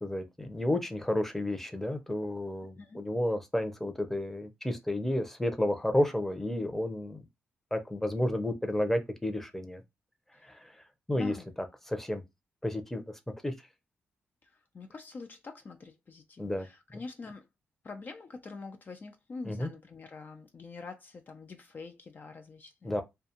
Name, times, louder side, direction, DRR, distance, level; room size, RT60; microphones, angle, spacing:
voice 1, 0.0-7.2 7.7-9.8 10.4-10.8 11.1-12.2 12.6-13.5 16.4-16.7 19.4-19.7 22.8-23.0, left 1 dB, 5° left, 0.6 m, -31 dB
voice 2, 11.1-11.5 14.4-17.5 17.8-23.0, left 3 dB, 45° left, 0.4 m, -45 dB
2.4 x 2.2 x 2.8 m
cardioid pair, 65°, 4 cm